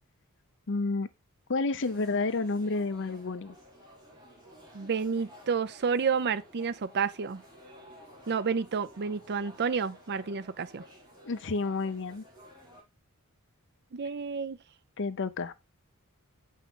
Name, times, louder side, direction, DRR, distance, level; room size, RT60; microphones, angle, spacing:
voice 1, 0.7-1.1 1.5-3.5 11.2-12.2 15.0-15.5, left 3 dB, 55° left, 0.7 m, -30 dB
sound 1, 1.8-12.8, equal, 20° right, 4.4 m, -53 dB
voice 2, 4.7-7.4 8.3-10.8 13.9-14.6, right 5 dB, 50° right, 0.5 m, -30 dB
7.2 x 5.7 x 3.7 m
head